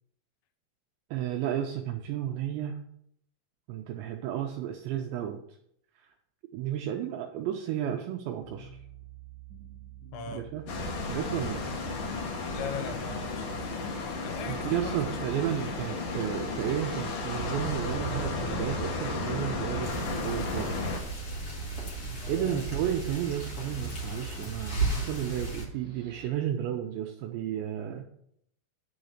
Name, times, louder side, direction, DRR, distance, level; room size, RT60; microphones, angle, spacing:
voice 1, 1.1-2.8 3.7-5.4 6.5-8.7 10.3-10.7 11.1-11.6 14.4-20.9 22.1-28.0, right 10 dB, 85° right, 3 dB, 2.6 m, -32 dB
sound 1, 8.4-26.3, right 11 dB, 35° right, 2.9 m, -47 dB
voice 2, 10.1-10.5 12.5-13.9 14.2-15.2 22.2-22.7, left 6 dB, 85° left, 6 dB, 3.5 m, -40 dB
sound 2, 10.7-21.0, left 3 dB, 65° left, 2.0 m, -33 dB
sound 3, 19.8-25.6, right 3 dB, 50° left, 1.7 m, -35 dB
10.5 x 4.0 x 6.5 m, 0.70 s
omnidirectional pair, 5.9 m